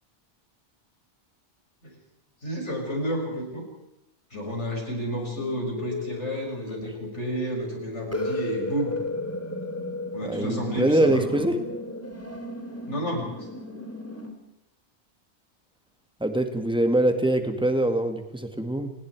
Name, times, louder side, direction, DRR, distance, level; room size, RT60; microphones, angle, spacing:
voice 1, 2.4-3.6 4.3-9.0 10.1-11.4 12.9-13.3, equal, 80° left, 0 dB, 6.5 m, -31 dB
sound 1, 4.3-14.3, left 2 dB, 10° left, 2.5 m, -35 dB
voice 2, 10.2-11.6 16.2-18.9, right 1 dB, 5° right, 7 dB, 1.9 m, -23 dB
29.5 x 19.5 x 4.7 m, 0.88 s
omnidirectional pair, 1.2 m